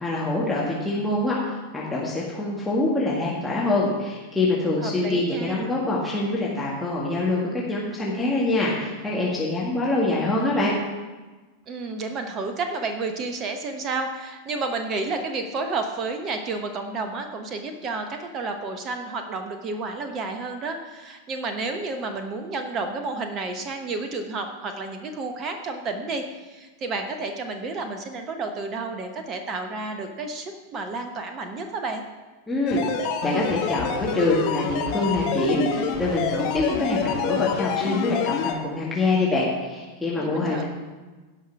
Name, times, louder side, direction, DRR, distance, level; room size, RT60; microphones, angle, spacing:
voice 1, 0.0-10.7 32.5-32.9 33.2-40.6, left 2 dB, 5° left, -6 dB, 1.9 m, -25 dB
voice 2, 4.8-5.7 11.7-32.0 40.2-40.6, right 3 dB, 30° right, 6 dB, 1.0 m, -31 dB
sound 1, 32.7-38.5, left 7 dB, 45° left, 1.2 m, -27 dB
17.0 x 5.7 x 4.7 m, 1.3 s
figure-of-eight pair, 90°, 0 cm